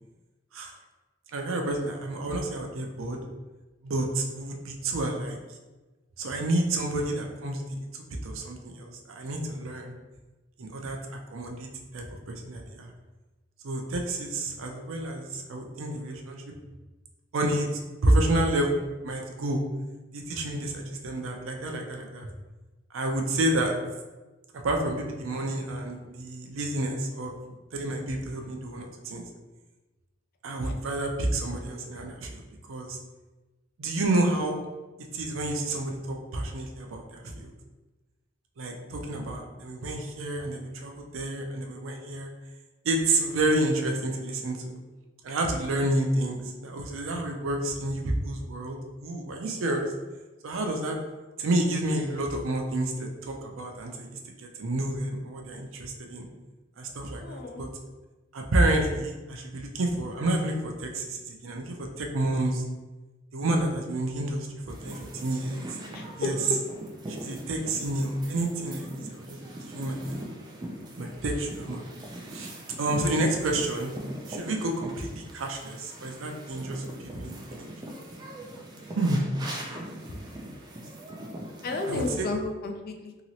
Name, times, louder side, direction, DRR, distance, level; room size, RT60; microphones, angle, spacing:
voice 1, 1.3-3.2 3.8-5.4 6.2-7.6 7.9-9.9 10.6-12.9 13.6-16.5 17.3-17.7 18.0-18.8 19.0-19.6 20.1-22.3 22.9-23.7 24.5-27.3 27.7-29.2 30.4-33.0 33.8-34.6 35.1-37.5 38.6-42.3 42.8-44.8 45.2-49.9 50.4-51.0 51.4-56.3 56.8-57.7 58.3-62.6 63.3-65.6 66.2-66.3 67.1-70.2 71.0-71.9 72.3-72.5 72.8-73.9 74.3-77.7 79.0-79.2 81.9-82.3, right 1 dB, 80° right, 2 dB, 0.5 m, -29 dB
voice 2, 57.2-57.7 65.9-66.3 67.2-67.3 81.6-83.2, left 2 dB, 50° left, 4 dB, 0.4 m, -33 dB
sound 1, 64.7-82.2, right 1 dB, 20° right, 0.4 m, -41 dB
2.9 x 2.9 x 2.7 m, 1.2 s
head